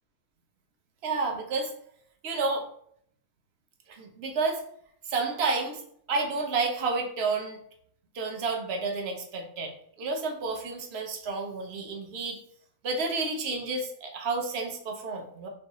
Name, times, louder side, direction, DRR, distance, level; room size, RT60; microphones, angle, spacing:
voice 1, 1.0-1.7 2.2-2.7 3.9-4.6 5.1-5.8 6.1-7.6 8.1-12.4 12.8-15.5, right 3 dB, 55° right, 2 dB, 0.8 m, -30 dB
4.5 x 2.6 x 3.0 m, 0.65 s
omnidirectional pair, 1.6 m